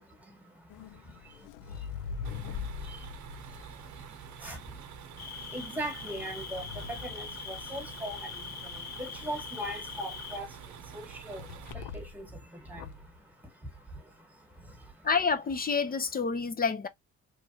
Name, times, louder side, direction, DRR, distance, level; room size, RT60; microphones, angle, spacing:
voice 1, 0.0-15.1, right 1 dB, 5° right, 1.3 m, -42 dB
sound 1, 0.7-4.8 5.8-8.1 11.4-12.3 12.7-13.1, left 6 dB, 85° left, 0.5 m, -42 dB
sound 2, 2.2-11.7, right 7 dB, 70° right, 0.7 m, -47 dB
Cricket, 5.2-10.4, left 7 dB, 60° left, 0.9 m, -43 dB
voice 2, 15.0-16.9, left 5 dB, 30° left, 0.5 m, -28 dB
3.2 x 2.5 x 2.6 m
cardioid pair, 90°, 30 cm